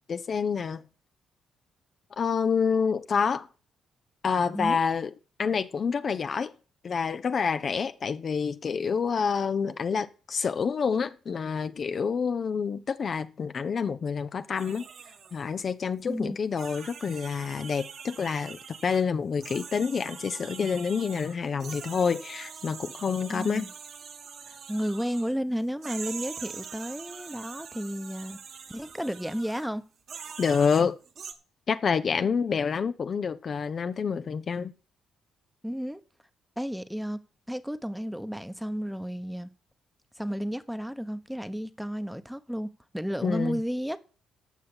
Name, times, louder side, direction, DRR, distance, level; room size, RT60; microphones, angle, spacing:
voice 1, 0.1-0.8 2.2-3.5 4.2-5.1 5.4-6.5 6.8-14.8 15.3-23.7 30.4-31.0 31.7-34.7 43.2-43.6, left 6 dB, 45° left, 0.7 m, -28 dB
sound 1, 14.6-15.5 16.0-16.1 16.6-19.0 19.4-25.4 25.8-29.7 30.1-31.3, right 6 dB, 60° right, 1.9 m, -43 dB
voice 2, 16.1-16.4 23.3-23.7 24.7-28.4 28.7-29.8 35.6-36.0 36.6-37.2 37.5-39.5 40.2-44.0, equal, ahead, 1.1 m, -32 dB
14.5 x 5.7 x 7.2 m
cardioid pair, 90°, 0 cm